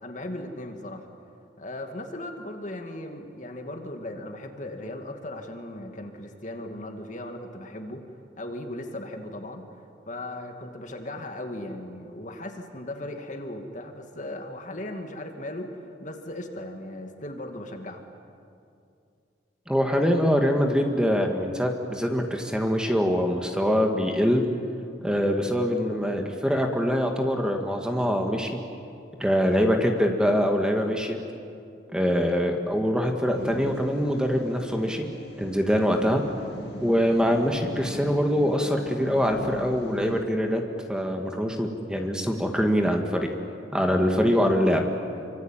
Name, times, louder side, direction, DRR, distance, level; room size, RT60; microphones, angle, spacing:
voice 1, 0.0-1.1 1.6-8.0 8.4-9.7 10.1-18.0, left 1 dB, 40° left, 4 dB, 2.3 m, -37 dB
voice 2, 19.7-24.4 25.0-28.5 29.2-31.2 31.9-35.1 35.4-36.2 36.8-40.6 40.9-43.3 43.7-44.8, equal, 5° right, 3 dB, 1.9 m, -24 dB
sound 1, 33.4-40.2, left 1 dB, 60° left, 1.7 m, -42 dB
26.0 x 25.0 x 9.1 m, 2.5 s
head